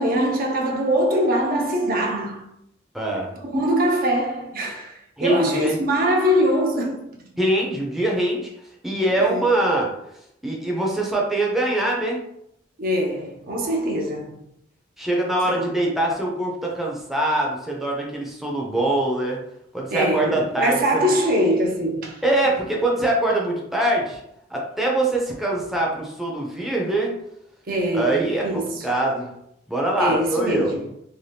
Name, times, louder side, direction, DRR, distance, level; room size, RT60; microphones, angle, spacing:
voice 1, 0.0-2.5 3.4-7.2 9.2-9.4 12.8-14.4 15.4-15.7 19.9-22.2 27.7-28.9 30.0-30.9, equal, 50° right, 0.5 m, -23 dB
voice 2, 2.9-3.3 5.2-5.8 7.4-8.5 8.8-9.9 10.4-12.2 15.0-19.4 19.7-20.8 22.2-24.2 24.5-27.1 27.9-29.3 29.7-30.8, right 1 dB, ahead, 0.5 m, -23 dB
2.7 x 2.1 x 3.2 m
head